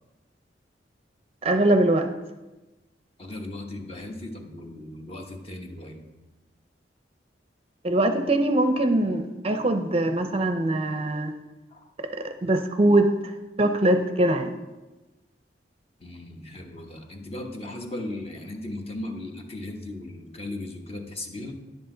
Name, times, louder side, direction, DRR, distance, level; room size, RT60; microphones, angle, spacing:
voice 1, 1.4-2.1 7.8-11.3 12.0-13.3 13.6-14.5, right 1 dB, 35° right, 7 dB, 0.5 m, -22 dB
voice 2, 3.2-6.0 11.7-11.9 16.0-21.6, left 1 dB, 35° left, 3 dB, 1.1 m, -37 dB
10.5 x 7.9 x 3.8 m, 1.1 s
head